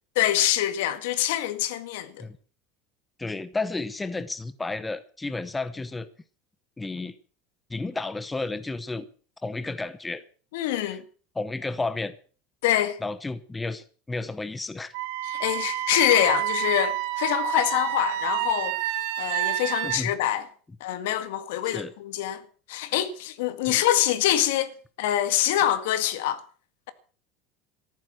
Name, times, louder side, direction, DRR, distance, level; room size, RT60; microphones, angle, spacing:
voice 1, 0.2-2.2 10.5-11.0 12.6-13.0 15.2-18.8 19.2-20.5 20.8-22.4 22.7-24.7 25.0-26.4, left 12 dB, 80° left, 2.0 m, -25 dB
voice 2, 3.2-6.1 6.8-7.1 7.7-9.1 9.4-10.2 10.8-11.0 11.4-12.2 13.0-14.9 19.8-20.1 21.6-21.9 23.7-23.8, left 3 dB, 10° left, 0.8 m, -32 dB
Wind instrument woodwind instrument, 14.9-20.0, right 15 dB, 60° right, 1.7 m, -29 dB
14.0 x 11.5 x 7.5 m
cardioid pair, 180°, 0 cm